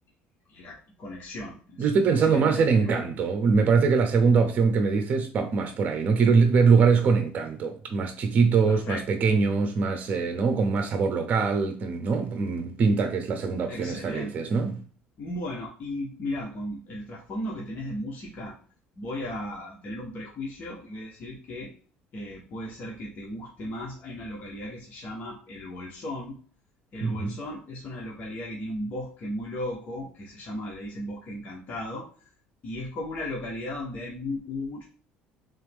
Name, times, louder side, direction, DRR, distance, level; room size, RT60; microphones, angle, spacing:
voice 1, 0.5-3.0 8.7-9.0 13.7-14.5 15.2-18.6 19.0-21.7 22.1-26.4 26.9-32.1 32.6-34.8, left 1 dB, 45° left, 1.1 m, -36 dB
voice 2, 1.8-14.7 27.0-27.3, right 5 dB, 40° right, 0.8 m, -23 dB
3.6 x 2.9 x 3.5 m
cardioid pair, 120°, 4 cm